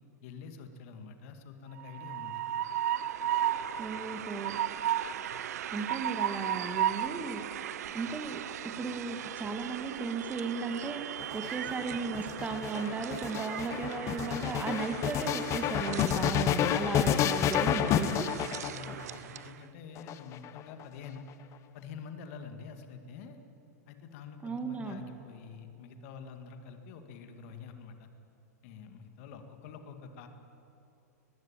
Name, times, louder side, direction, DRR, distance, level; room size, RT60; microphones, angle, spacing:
voice 1, 0.2-2.4 18.7-21.3 21.7-23.4 23.9-28.1 28.6-30.3, left 6 dB, 50° left, 7 dB, 2.1 m, -47 dB
Train, 1.8-19.6, right 11 dB, 65° right, 0.7 m, -36 dB
voice 2, 3.8-4.6 5.7-7.4 7.9-8.4 8.8-11.0 11.3-18.3 24.4-25.0, right 4 dB, 15° right, 7 dB, 1.8 m, -35 dB
sound 1, 11.2-19.2 20.0-20.8, left 10 dB, 35° left, 0.9 m, -30 dB
20.5 x 15.5 x 9.0 m, 2.8 s
hypercardioid pair, 105°, 9 cm